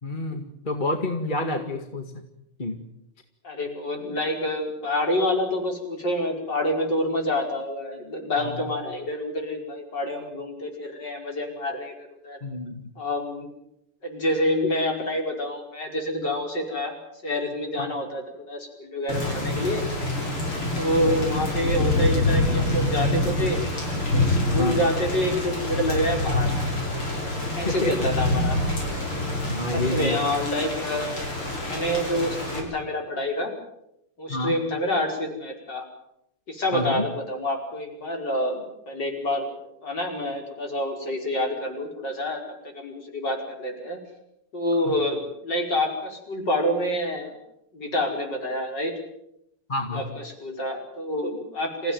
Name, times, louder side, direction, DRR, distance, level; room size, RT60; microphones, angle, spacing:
voice 1, 0.0-2.1 2.6-2.8 8.4-8.6 12.4-12.9 20.6-20.7 24.5-24.8 27.6-27.9 29.5-30.2 34.3-34.6 36.7-37.0 44.9-45.0 49.7-50.0, left 2 dB, 25° left, 5 dB, 1.9 m, -28 dB
voice 2, 3.4-12.4 13.0-13.5 14.0-17.0 17.2-19.8 20.8-23.6 24.1-26.5 27.6-28.6 29.7-31.1 31.6-33.5 34.2-35.9 36.5-39.5 39.8-44.0 44.5-47.4 47.7-48.9 49.9-51.9, left 1 dB, 55° left, 2 dB, 5.8 m, -27 dB
Thunder / Rain, 19.1-32.6, left 2 dB, 85° left, 7.4 m, -26 dB
28.0 x 16.0 x 9.3 m, 0.82 s
omnidirectional pair, 2.3 m